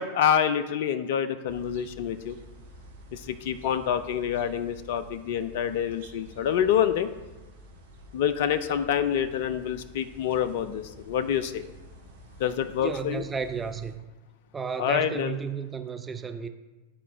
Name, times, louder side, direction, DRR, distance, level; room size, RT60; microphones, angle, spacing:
voice 1, 0.0-2.4 3.1-7.1 8.1-11.6 12.4-13.2 14.8-15.4, left 9 dB, 50° left, 12 dB, 0.3 m, -27 dB
sound 1, 1.5-13.9, right 1 dB, 60° right, 0.9 m, -49 dB
voice 2, 12.8-14.0 14.5-16.5, right 6 dB, 15° right, 7 dB, 0.4 m, -33 dB
11.0 x 4.2 x 2.6 m, 1.1 s
figure-of-eight pair, 90°, 0 cm